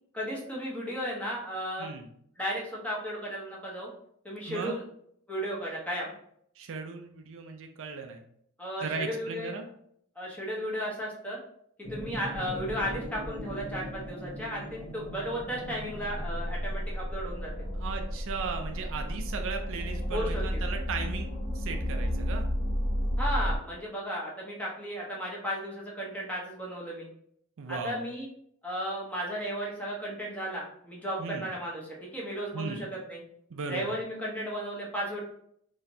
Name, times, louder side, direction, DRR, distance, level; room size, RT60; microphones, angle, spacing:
voice 1, 0.1-1.9 2.4-3.9 4.2-4.8 5.3-6.1 8.6-9.5 10.2-11.4 11.8-17.5 20.1-20.6 23.2-27.1 27.7-28.3 28.6-33.2 33.7-35.2, equal, 5° left, -5 dB, 1.1 m, -34 dB
voice 2, 6.6-8.2 8.8-9.7 17.7-21.3 21.5-22.5 27.6-28.0 31.2-31.5 32.5-32.8 33.5-34.0, right 5 dB, 65° right, 4 dB, 0.5 m, -36 dB
sound 1, 11.8-23.6, equal, 50° left, 1.1 m, -33 dB
4.1 x 3.0 x 2.7 m, 0.68 s
head